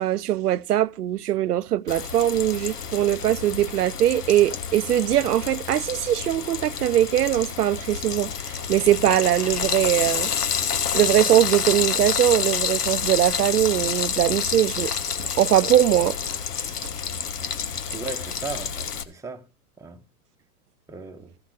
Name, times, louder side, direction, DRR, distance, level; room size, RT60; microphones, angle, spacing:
voice 1, 0.0-10.3 10.9-16.2, right 12 dB, 85° right, 0.6 m, -21 dB
Frying (food), 1.9-19.0, left 7 dB, 80° left, 1.2 m, -28 dB
voice 2, 17.9-19.5 19.8-20.0 20.9-21.3, right 4 dB, 5° right, 1.0 m, -36 dB
15.0 x 5.9 x 4.8 m
hypercardioid pair, 120°, 45 cm